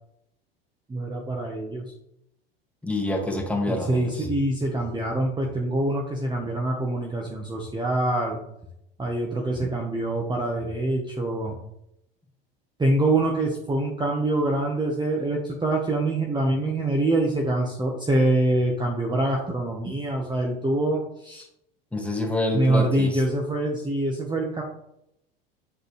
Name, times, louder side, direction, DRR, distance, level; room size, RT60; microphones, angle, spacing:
voice 1, 0.9-1.9 3.7-8.4 9.0-11.6 12.8-21.5 22.5-24.6, right 1 dB, 15° right, 0 dB, 1.2 m, -25 dB
voice 2, 2.8-4.3 21.9-23.2, left 2 dB, 5° left, -1 dB, 2.0 m, -27 dB
7.1 x 6.4 x 3.2 m, 0.79 s
hypercardioid pair, 80°, 29 cm